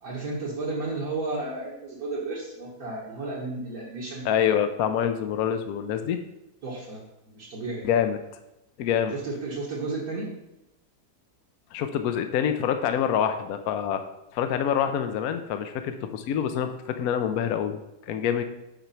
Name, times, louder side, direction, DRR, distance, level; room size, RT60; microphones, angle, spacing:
voice 1, 0.0-4.3 6.6-7.9 9.1-10.3, right 3 dB, 55° right, -5 dB, 1.9 m, -33 dB
voice 2, 4.2-6.2 7.8-8.2 8.8-9.1 11.7-14.0 14.3-17.8 18.1-18.4, left 8 dB, 65° left, 8 dB, 1.0 m, -26 dB
7.9 x 4.6 x 5.6 m, 0.92 s
omnidirectional pair, 1.9 m